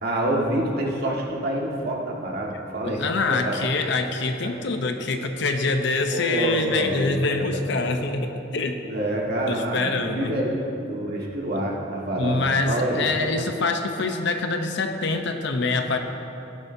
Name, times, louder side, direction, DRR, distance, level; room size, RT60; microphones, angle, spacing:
voice 1, 0.0-3.0 3.3-3.6 4.4-4.5 6.1-7.3 7.5-7.6 8.9-10.6 10.9-13.1, right 1 dB, 55° right, -2 dB, 1.7 m, -27 dB
voice 2, 2.9-8.8 9.5-10.3 12.2-16.0, left 3 dB, 65° left, 6 dB, 0.7 m, -25 dB
16.5 x 10.5 x 2.7 m, 3.0 s
head